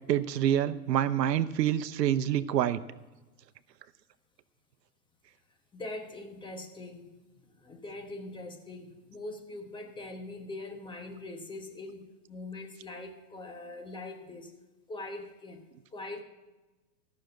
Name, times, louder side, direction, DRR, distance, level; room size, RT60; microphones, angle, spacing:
voice 1, 0.1-2.8, right 11 dB, 85° right, 14 dB, 0.8 m, -27 dB
voice 2, 5.7-7.0 7.6-14.5 14.9-15.6 15.9-16.2, left 2 dB, 10° left, 4 dB, 1.0 m, -42 dB
14.0 x 6.5 x 7.7 m, 1.1 s
hypercardioid pair, 140°, 48 cm